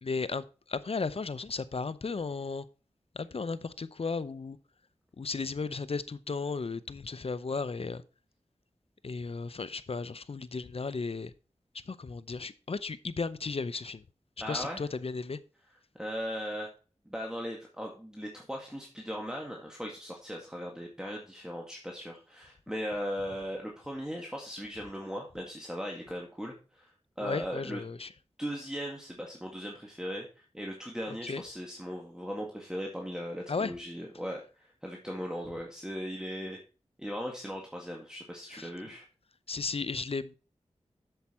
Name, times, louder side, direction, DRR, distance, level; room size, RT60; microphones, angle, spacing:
voice 1, 0.0-2.7 3.1-4.6 5.2-8.0 9.0-11.3 11.9-14.0 14.5-15.4 27.2-28.1 31.2-31.4 33.5-33.7 38.5-38.7 39.5-40.3, left 4 dB, 55° left, 15 dB, 0.6 m, -35 dB
voice 2, 14.4-14.8 16.0-16.7 17.1-27.8 28.4-36.6 37.0-39.1, equal, 5° right, 0 dB, 1.9 m, -38 dB
8.1 x 7.3 x 4.4 m, 0.35 s
cardioid pair, 45°, 12 cm